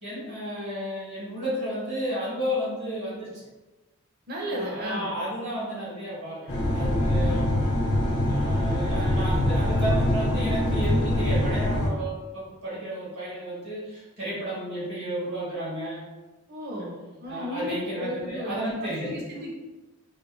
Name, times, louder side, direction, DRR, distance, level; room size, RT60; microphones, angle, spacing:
voice 1, 0.0-3.4 4.5-7.7 8.2-16.1 17.2-19.1, equal, 70° right, -8 dB, 1.1 m, -32 dB
voice 2, 4.3-5.1 16.5-19.5, equal, 45° right, -2 dB, 0.6 m, -34 dB
sound 1, 6.5-11.9, left 1 dB, 75° left, 0.7 m, -24 dB
2.4 x 2.1 x 3.0 m, 1.1 s
head